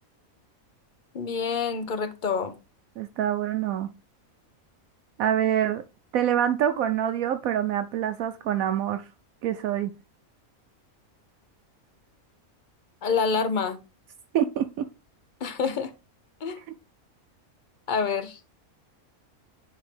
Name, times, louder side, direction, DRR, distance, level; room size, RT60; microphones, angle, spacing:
voice 1, 1.1-2.5 13.0-13.8 15.4-15.9 16.4-16.6 17.9-18.4, left 5 dB, 45° left, 0.7 m, -27 dB
voice 2, 3.0-3.9 5.2-5.8 6.1-9.0 9.4-9.9 14.3-14.8, right 10 dB, 80° right, 1.0 m, -25 dB
10.0 x 3.6 x 3.3 m
omnidirectional pair, 1.5 m